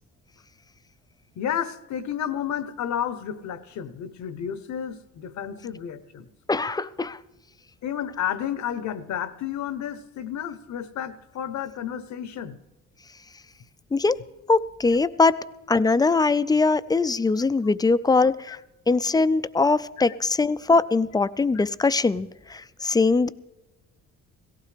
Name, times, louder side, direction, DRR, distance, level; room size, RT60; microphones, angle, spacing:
voice 1, 1.4-6.3 7.8-12.6 18.5-18.6, left 9 dB, 65° left, 15 dB, 0.8 m, -31 dB
voice 2, 6.5-7.2 13.9-14.2 14.5-15.4 15.7-18.6 18.9-23.3, left 3 dB, 15° left, 15 dB, 0.3 m, -21 dB
17.5 x 15.5 x 3.3 m, 1.0 s
cardioid pair, 95°, 30 cm